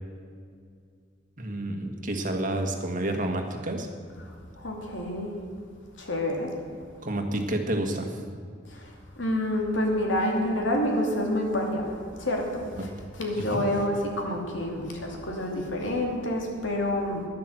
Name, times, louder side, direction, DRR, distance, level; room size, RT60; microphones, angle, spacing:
voice 1, 1.4-3.9 7.0-8.1 12.8-12.9 13.3-13.6, right 1 dB, 45° right, 4 dB, 1.5 m, -29 dB
voice 2, 4.6-5.3 6.0-6.5 8.7-12.9 13.2-17.3, left 1 dB, 90° left, 1 dB, 2.5 m, -28 dB
10.5 x 10.0 x 7.8 m, 2.1 s
head